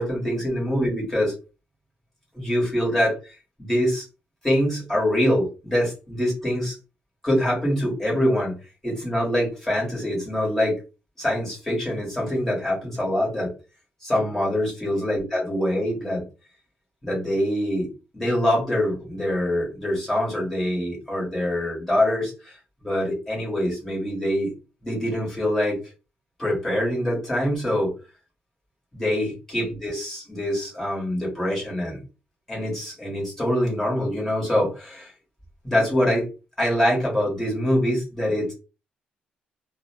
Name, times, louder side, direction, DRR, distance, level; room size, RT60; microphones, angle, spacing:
voice 1, 0.0-1.3 2.3-3.1 3.6-4.0 4.4-6.7 7.2-8.5 8.8-10.8 11.2-13.5 14.0-16.2 17.0-17.9 18.1-22.5 22.8-24.5 24.8-25.8 26.4-27.9 28.9-32.0 32.5-35.1 35.6-36.2 36.6-38.5, equal, 10° left, -4 dB, 1.4 m, -24 dB
2.7 x 2.1 x 2.8 m, 0.31 s
cardioid pair, 145°, 3 cm